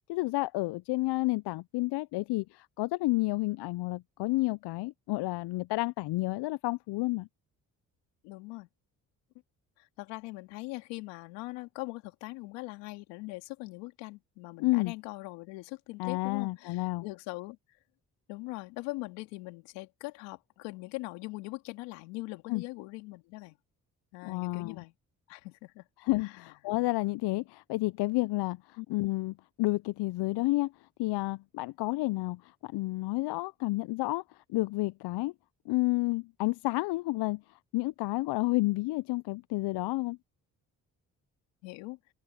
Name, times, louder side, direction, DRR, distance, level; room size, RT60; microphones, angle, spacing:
voice 1, 0.1-7.3 14.6-14.9 16.0-17.0 22.5-22.6 24.2-24.8 26.0-30.7 31.0-34.2 34.5-35.3 35.7-37.4 37.7-40.2, left 21 dB, 70° left, 0.6 m, -30 dB
voice 2, 8.2-8.7 9.8-17.6 18.3-23.6 24.1-24.9 25.3-25.9 26.2-26.5 28.8-28.9 41.6-42.0, left 23 dB, 85° left, 2.2 m, -41 dB
open air
hypercardioid pair, 50°, 42 cm